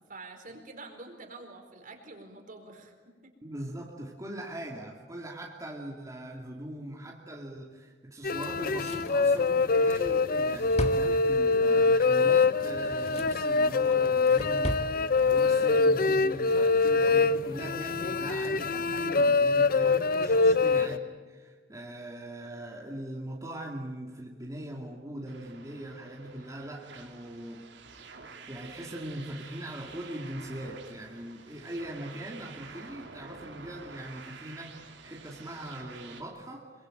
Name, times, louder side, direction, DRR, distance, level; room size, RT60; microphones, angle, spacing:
voice 1, 0.0-3.3 15.3-15.7 20.3-20.6, right 2 dB, 50° right, 4 dB, 4.5 m, -47 dB
voice 2, 3.4-14.8 15.2-27.7 28.2-36.7, right 1 dB, 20° right, -2 dB, 2.6 m, -41 dB
sound 1, 8.2-21.0, left 4 dB, 50° left, 0.7 m, -24 dB
Drawer open or close, 8.4-11.7 12.6-13.5 13.9-14.9 15.2-15.3, left 1 dB, 35° left, 2.1 m, -38 dB
sound 2, 25.3-36.2, right 4 dB, 75° right, 3.2 m, -49 dB
26.0 x 23.5 x 9.2 m, 1.5 s
head